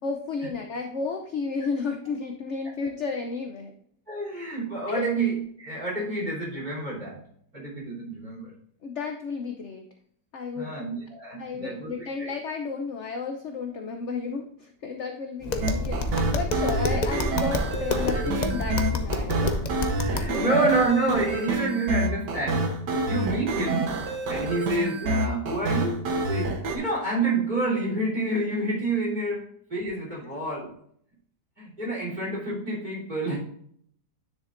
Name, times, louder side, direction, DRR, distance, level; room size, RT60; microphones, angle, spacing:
voice 1, 0.0-3.7 4.9-5.1 8.8-9.8 10.3-10.8 11.4-19.6 20.0-20.5 30.1-30.4, left 4 dB, 55° left, 4 dB, 0.8 m, -33 dB
voice 2, 4.1-7.2 7.5-8.5 10.5-12.3 18.1-18.2 20.0-24.0 24.3-29.4 29.7-30.7 31.6-33.4, right 2 dB, 25° right, -4 dB, 3.4 m, -28 dB
Tap, 15.4-20.4, left 2 dB, 75° left, 0.4 m, -29 dB
sound 1, 15.6-26.8, right 2 dB, 85° right, 1.7 m, -28 dB
10.0 x 6.6 x 2.5 m, 0.65 s
omnidirectional pair, 1.8 m